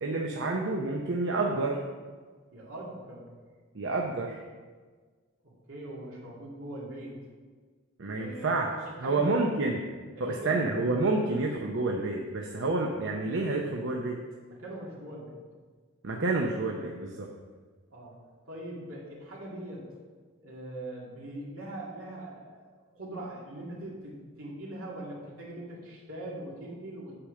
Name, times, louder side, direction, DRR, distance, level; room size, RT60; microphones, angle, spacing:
voice 1, 0.0-1.8 3.7-4.4 8.0-8.7 9.0-9.8 10.2-14.2 16.0-17.3, right 3 dB, 60° right, 1 dB, 0.7 m, -29 dB
voice 2, 2.5-3.3 5.7-7.2 8.1-9.4 10.2-10.7 14.5-15.4 17.9-18.2 18.5-19.9 20.4-27.2, right 1 dB, 80° right, -4 dB, 2.6 m, -41 dB
8.8 x 5.0 x 6.4 m, 1.5 s
head